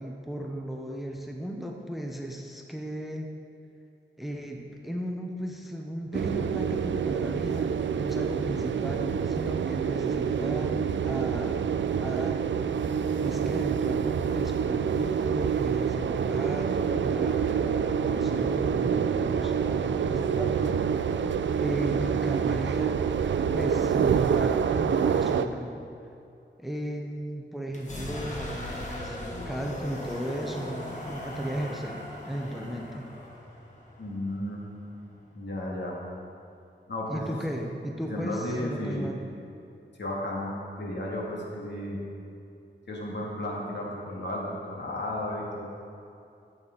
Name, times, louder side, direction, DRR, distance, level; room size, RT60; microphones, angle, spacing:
voice 1, 0.0-3.3 4.2-11.6 12.0-12.5 13.2-21.0 21.6-23.0 23.5-25.8 26.6-29.2 29.4-33.1 37.1-39.2, equal, ahead, 1 dB, 0.8 m, -35 dB
sound 1, 6.1-25.5, right 7 dB, 75° right, 0.4 m, -27 dB
sound 2, 27.7-35.4, left 1 dB, 40° left, 1.7 m, -39 dB
voice 2, 34.0-34.6 35.3-36.0 36.9-37.2 38.1-39.1 40.0-42.0 42.9-45.6, left 1 dB, 65° left, -3 dB, 2.3 m, -33 dB
13.5 x 7.9 x 3.9 m, 2.6 s
wide cardioid pair, 110°, 19 cm